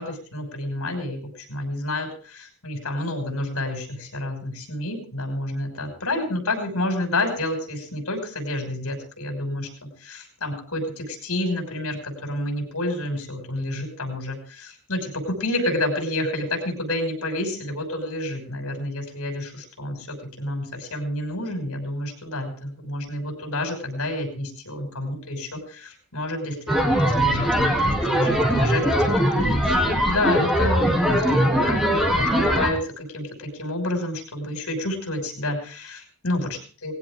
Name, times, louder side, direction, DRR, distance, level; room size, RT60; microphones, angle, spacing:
voice 1, 0.0-36.9, left 1 dB, 80° left, 4 dB, 6.0 m, -29 dB
sound 1, 26.7-32.7, equal, ahead, 3.0 m, -21 dB
19.5 x 16.5 x 3.7 m, 0.38 s
head